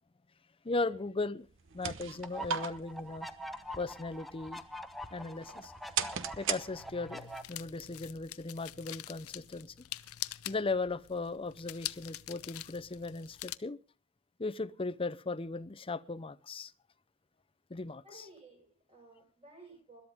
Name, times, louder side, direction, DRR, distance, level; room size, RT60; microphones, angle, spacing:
voice 1, 0.6-1.5 1.7-3.3 3.8-4.6 5.1-5.7 6.4-9.7 10.5-13.8 14.4-16.7 17.7-18.3, left 3 dB, 25° left, 0.6 m, -37 dB
sound 1, 1.5-7.2, right 8 dB, 60° right, 1.0 m, -40 dB
sound 2, 2.2-7.4, equal, ahead, 1.0 m, -44 dB
sound 3, 6.1-13.6, left 14 dB, 85° left, 0.6 m, -45 dB
voice 2, 18.0-20.0, right 2 dB, 30° right, 5.5 m, -55 dB
21.0 x 12.5 x 3.6 m
head